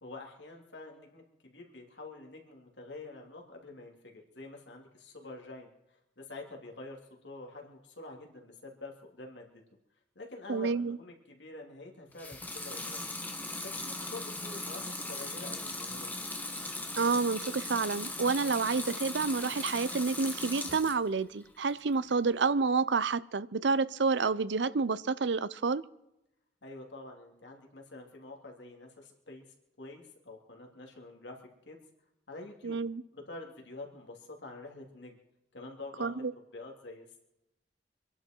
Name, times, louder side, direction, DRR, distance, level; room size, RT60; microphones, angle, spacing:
voice 1, 0.0-5.7 6.2-9.6 10.1-13.1 13.6-16.1 26.6-29.4 29.8-31.4 31.6-31.8 32.3-32.8 33.1-35.2 35.5-36.2 36.5-37.2, left 2 dB, 90° left, 1 dB, 3.0 m, -47 dB
voice 2, 10.5-11.0 17.0-25.8 32.6-33.0 36.0-36.3, right 4 dB, 85° right, 16 dB, 0.7 m, -29 dB
Water tap faucet / Sink (filling or washing) / Liquid, 12.1-21.1 21.5-22.2, left 2 dB, 10° left, 1.4 m, -39 dB
25.5 x 11.0 x 4.5 m, 0.87 s
head